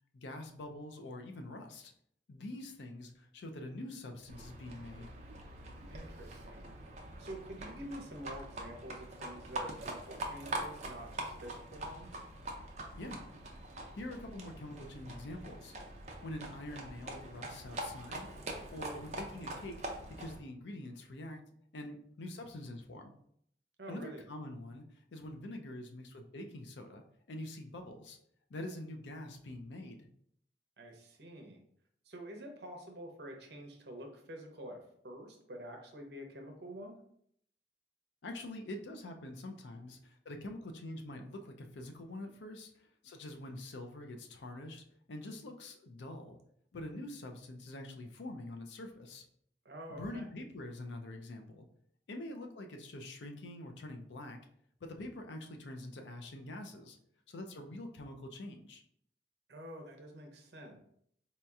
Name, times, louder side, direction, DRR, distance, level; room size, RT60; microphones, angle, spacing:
voice 1, 0.1-1.9 2.3-5.1 13.0-13.2 13.9-15.7 16.2-18.3 18.7-21.4 21.7-23.1 23.9-24.8 25.1-27.0 27.3-28.2 28.5-30.1 38.2-46.4 46.7-49.2 49.9-51.7 52.1-54.4 54.8-57.0 57.3-58.8, left 1 dB, 85° left, 4 dB, 0.5 m, -45 dB
Livestock farm animals working animals, 4.3-20.4, right 2 dB, 40° right, 0.5 m, -44 dB
voice 2, 5.9-6.7 7.2-12.2 23.8-24.2 30.8-31.6 32.0-37.0 49.6-50.3 59.5-60.8, right 1 dB, 70° right, 3 dB, 0.7 m, -48 dB
4.2 x 2.8 x 2.3 m, 0.68 s
head